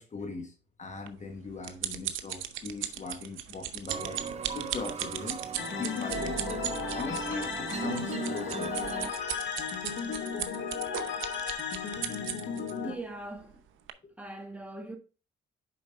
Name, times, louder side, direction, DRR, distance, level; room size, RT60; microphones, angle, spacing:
voice 1, 0.0-4.2 4.5-5.4 5.7-6.4 6.9-9.0 11.7-12.0 14.0-14.1, left 4 dB, 35° left, 1.3 m, -40 dB
sound 1, 1.1-12.7 13.4-13.6 13.9-14.0, right 11 dB, 85° right, 0.7 m, -37 dB
sound 2, 3.9-9.1, right 6 dB, 30° right, 0.5 m, -38 dB
sound 3, 5.6-13.0, left 6 dB, 65° left, 1.5 m, -35 dB
voice 2, 12.8-13.6 14.2-15.0, right 2 dB, 5° right, 1.8 m, -40 dB
7.0 x 5.0 x 3.7 m
cardioid pair, 90°, 20 cm